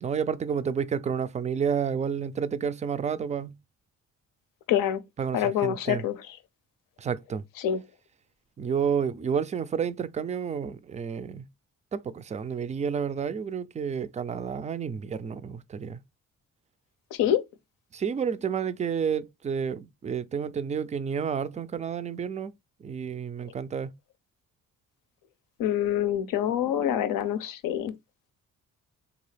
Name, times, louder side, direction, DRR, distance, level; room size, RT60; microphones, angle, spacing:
voice 1, 0.0-3.5 5.2-6.0 7.0-7.4 8.6-11.5 11.9-16.0 17.9-22.5 22.8-23.9, right 7 dB, 25° right, 0.3 m, -30 dB
voice 2, 4.7-5.0 5.3-6.1 7.6-7.8 17.1-17.4 25.6-27.9, left 10 dB, 85° left, 0.6 m, -26 dB
3.8 x 2.4 x 3.2 m
cardioid pair, 85°, 32 cm